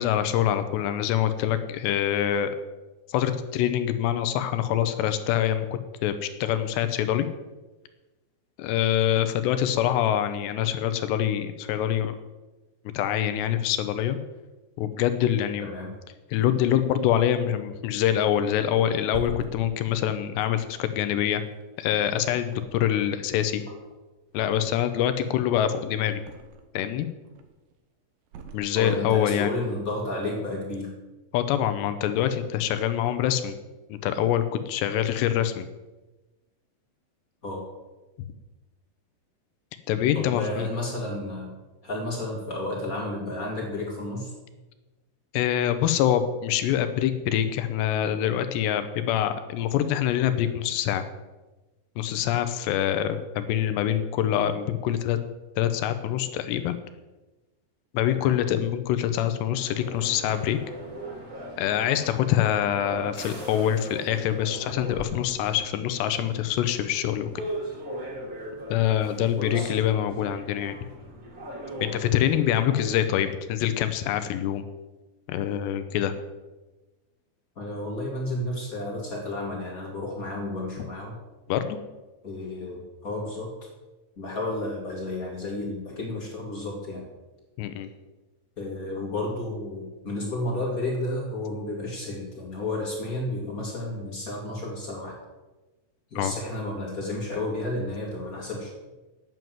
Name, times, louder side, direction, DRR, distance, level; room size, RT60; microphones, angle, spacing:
voice 1, 0.0-2.5 3.1-5.7 6.0-7.3 8.6-12.2 12.9-14.2 14.8-15.7 16.3-21.4 21.8-23.6 24.3-26.2 26.7-27.1 28.5-29.5 31.3-33.6 33.9-35.7 39.9-40.7 45.3-51.1 52.0-55.2 55.6-56.8 57.9-60.6 61.6-67.4 68.7-70.8 71.8-74.7 75.3-76.1 81.5-81.8 87.6-87.9 96.2-96.3, left 11 dB, 80° left, 10 dB, 2.5 m, -25 dB
voice 2, 15.6-15.9 23.7-23.8 28.7-30.9 32.2-32.3 37.4-37.7 40.1-41.5 41.8-44.3 58.1-58.4 69.4-69.7 77.5-81.2 82.2-83.5 84.2-87.1 88.6-95.2 96.1-98.7, left 2 dB, 55° left, -2 dB, 0.9 m, -32 dB
Thump thud, 18.7-22.0 22.4-23.2 23.5-25.0 25.3-26.8 27.2-27.7 28.3-29.3 29.6-29.8, right 5 dB, 75° right, 3.2 m, -44 dB
sound 1, 59.5-73.0, right 1 dB, 50° right, 1.0 m, -39 dB
9.3 x 7.7 x 9.3 m, 1.1 s
omnidirectional pair, 5.7 m